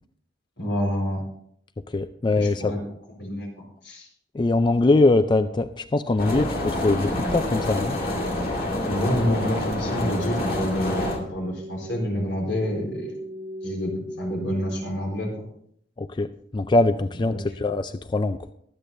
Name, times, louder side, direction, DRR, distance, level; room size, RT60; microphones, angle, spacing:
voice 1, 0.6-1.2 2.4-2.8 3.2-3.5 3.8-4.1 8.8-13.1 13.6-15.5 17.3-17.4, equal, 85° left, 0 dB, 4.2 m, -27 dB
voice 2, 1.9-2.7 4.3-8.0 16.0-18.5, left 2 dB, 25° left, 10 dB, 0.4 m, -22 dB
sound 1, 6.2-11.2, left 1 dB, 55° left, 2.2 m, -28 dB
sound 2, 6.2-15.2, equal, 20° right, 1.0 m, -37 dB
23.0 x 8.3 x 2.6 m, 0.67 s
head